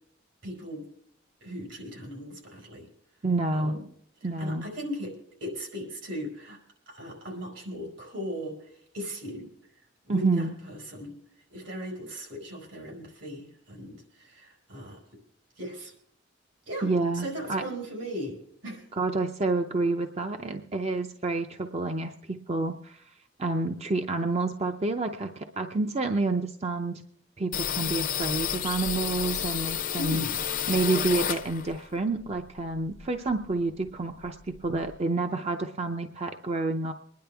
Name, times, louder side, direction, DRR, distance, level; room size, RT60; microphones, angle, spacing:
voice 1, 0.4-0.9 1.4-2.9 3.5-3.8 4.2-5.1 5.4-6.6 6.9-9.5 10.1-11.1 11.5-15.0 15.6-15.9 16.7-18.4 18.6-18.9 30.0-30.4, equal, 80° right, 1 dB, 4.7 m, -38 dB
voice 2, 3.2-3.8 4.2-4.7 10.1-10.5 16.8-17.6 18.9-23.1 23.4-27.0 27.4-30.2 30.7-36.9, right 3 dB, 35° right, 6 dB, 0.6 m, -29 dB
sound 1, 27.5-31.9 32.2-33.6 33.9-34.0 34.2-35.0, left 9 dB, 45° left, 0.6 m, -31 dB
23.0 x 10.5 x 3.4 m, 0.66 s
head